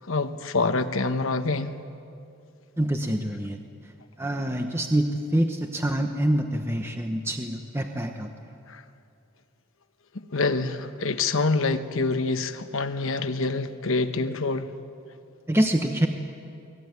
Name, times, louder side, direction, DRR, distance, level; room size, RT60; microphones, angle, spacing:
voice 1, 0.1-1.8 8.7-8.8 10.3-14.7, left 3 dB, 70° left, 9 dB, 1.1 m, -26 dB
voice 2, 2.8-3.6 4.2-8.3 15.5-16.1, right 1 dB, 10° right, 4 dB, 1.0 m, -25 dB
23.0 x 18.5 x 9.5 m, 2.5 s
head